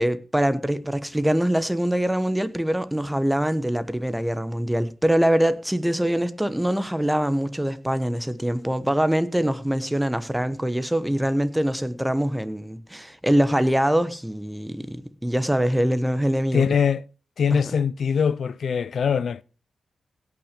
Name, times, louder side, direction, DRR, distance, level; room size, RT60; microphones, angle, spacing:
voice 1, 0.0-16.7 17.5-17.6, equal, 5° right, 1.1 m, -23 dB
voice 2, 16.5-17.0 17.4-19.4, left 6 dB, 70° left, 0.4 m, -22 dB
16.5 x 6.0 x 5.2 m
cardioid pair, 65°, 0 cm